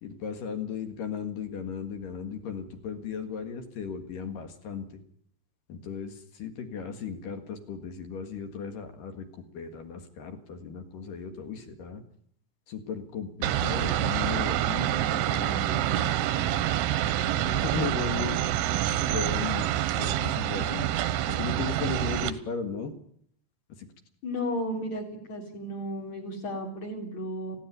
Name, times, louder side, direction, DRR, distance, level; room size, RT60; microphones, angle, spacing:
voice 1, 0.0-5.0 5.7-12.0 12.7-16.6 17.4-18.7 19.0-20.9 21.3-22.9 23.8-23.9, left 6 dB, 55° left, 7 dB, 2.8 m, -36 dB
sound 1, 13.4-22.3, right 12 dB, 85° right, 3.5 m, -27 dB
voice 2, 24.2-27.5, equal, 40° left, 1 dB, 4.2 m, -34 dB
18.5 x 16.0 x 9.3 m, 0.65 s
omnidirectional pair, 5.5 m